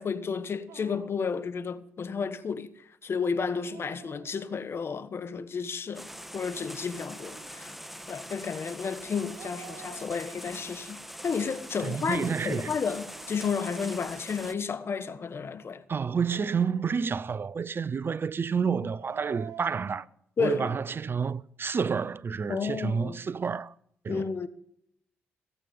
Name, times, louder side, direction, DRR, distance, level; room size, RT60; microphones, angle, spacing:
voice 1, 0.0-2.7 3.0-7.8 8.1-15.8 20.4-20.8 22.5-23.2 24.1-24.5, left 5 dB, 50° left, 1.3 m, -32 dB
Dog, 0.7-1.3 3.4-4.8 6.9-7.6 9.1-10.6 11.5-14.7 16.0-17.4 18.7-20.1, right 10 dB, 75° right, 1.1 m, -50 dB
sound 1, 5.9-14.5, equal, 5° right, 1.5 m, -43 dB
voice 2, 11.8-12.8 15.9-20.1 20.4-23.7 24.0-24.5, right 6 dB, 45° right, 0.6 m, -29 dB
17.0 x 8.4 x 5.3 m
supercardioid pair, 50°, 5 cm